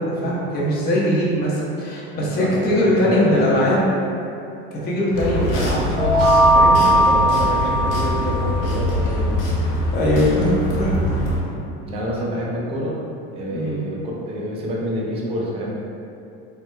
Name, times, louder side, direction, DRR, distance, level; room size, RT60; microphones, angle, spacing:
voice 1, 0.0-3.8 4.8-6.8 9.9-11.0 13.5-13.8, equal, 30° left, -5 dB, 0.6 m, -21 dB
voice 2, 2.2-3.5 6.8-9.4 11.9-13.0 13.4-15.7, equal, 20° right, -4 dB, 0.4 m, -27 dB
sound 1, 5.1-11.4, left 1 dB, 70° left, 0.9 m, -23 dB
sound 2, 6.0-8.7, right 1 dB, 85° right, 0.7 m, -17 dB
4.4 x 2.0 x 2.2 m, 2.6 s
cardioid pair, 150°, 31 cm